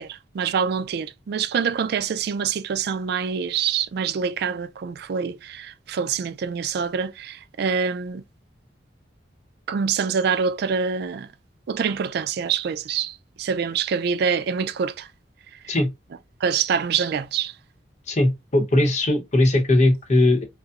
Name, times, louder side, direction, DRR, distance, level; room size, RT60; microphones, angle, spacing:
voice 1, 0.0-8.2 9.7-11.3 11.7-15.1 15.6-15.7 16.4-17.5, right 6 dB, 60° right, 0.3 m, -25 dB
voice 2, 18.1-20.4, left 1 dB, 40° left, 0.8 m, -19 dB
5.2 x 2.0 x 2.4 m
head